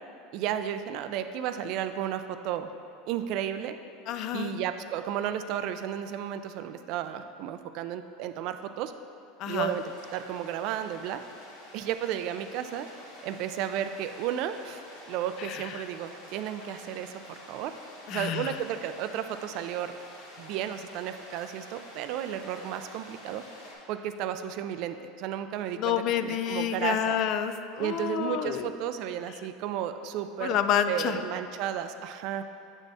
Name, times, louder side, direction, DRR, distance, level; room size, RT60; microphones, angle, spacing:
voice 1, 0.3-2.7 3.1-3.7 4.3-8.9 9.5-9.8 10.1-11.2 11.7-12.9 13.2-14.8 15.1-17.7 18.1-19.9 20.4-23.4 23.9-27.2 27.8-30.6 30.9-32.4, right 10 dB, 60° right, 10 dB, 0.3 m, -33 dB
voice 2, 4.1-4.6 9.4-9.8 15.4-15.8 18.1-18.6 25.8-28.7 30.4-31.2, left 9 dB, 50° left, 10 dB, 0.3 m, -29 dB
sound 1, 9.5-23.7, left 1 dB, 85° left, 1.5 m, -49 dB
8.0 x 4.1 x 3.4 m, 2.6 s
supercardioid pair, 105°, 0 cm